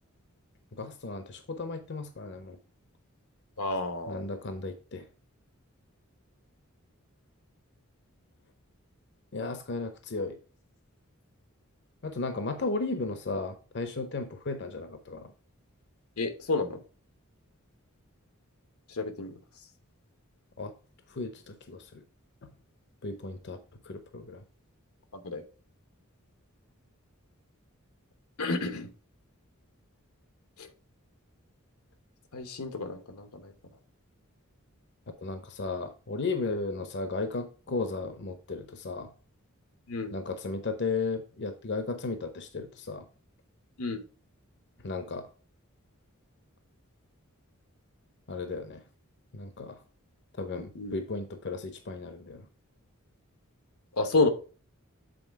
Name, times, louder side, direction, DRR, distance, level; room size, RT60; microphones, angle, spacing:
voice 1, 0.7-2.6 4.1-5.1 9.3-10.4 12.0-15.3 20.6-20.7 21.1-22.0 23.0-23.6 23.9-24.4 35.2-39.1 40.1-43.0 44.8-45.3 48.3-48.8 49.3-49.8 50.4-52.5, left 3 dB, 55° left, 8 dB, 0.7 m, -35 dB
voice 2, 3.6-4.2 16.2-16.8 19.0-19.3 25.2-25.4 28.4-28.9 30.6-30.7 32.3-33.4 39.9-40.1 43.8-44.0 50.7-51.0 54.0-54.3, left 3 dB, 90° left, 8 dB, 1.0 m, -30 dB
7.8 x 4.1 x 4.6 m, 0.37 s
head